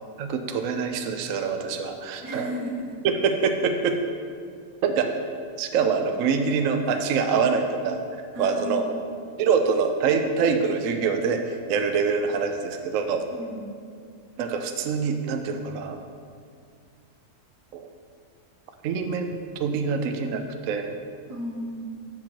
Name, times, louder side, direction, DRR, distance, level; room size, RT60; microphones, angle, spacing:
voice 1, 0.2-2.5 3.0-4.0 4.8-5.2 5.6-8.9 9.4-13.2 14.4-16.0 17.7-17.9 18.8-21.0, right 5 dB, 65° right, 6 dB, 0.9 m, -25 dB
voice 2, 2.2-3.0 8.3-9.0 13.3-13.8 21.3-22.0, equal, 85° right, -3 dB, 1.9 m, -34 dB
7.7 x 7.2 x 4.5 m, 2.2 s
omnidirectional pair, 1.6 m